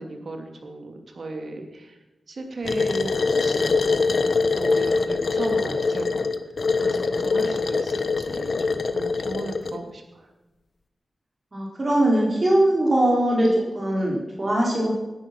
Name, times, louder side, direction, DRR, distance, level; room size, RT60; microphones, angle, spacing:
voice 1, 0.0-2.0 2.3-3.8 4.6-6.2 6.8-10.3, right 2 dB, 65° right, 3 dB, 2.8 m, -35 dB
sound 1, 2.7-9.8, left 4 dB, 65° left, 1.1 m, -23 dB
voice 2, 11.5-13.5 13.7-14.9, right 1 dB, 40° right, -3 dB, 4.5 m, -21 dB
18.0 x 11.0 x 6.2 m, 1.1 s
wide cardioid pair, 80°, 0 cm